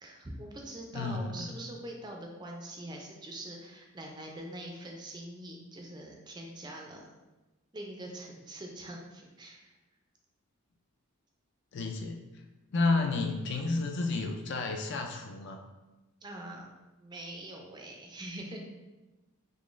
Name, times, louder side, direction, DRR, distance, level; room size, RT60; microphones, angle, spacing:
voice 1, 0.0-7.1 7.7-9.7 16.2-16.7 17.0-18.6, right 1 dB, 20° right, 0 dB, 0.4 m, -43 dB
voice 2, 0.9-1.5 11.7-12.2 12.7-15.6, left 3 dB, 50° left, 3 dB, 0.3 m, -31 dB
3.6 x 3.1 x 2.5 m, 1.1 s
head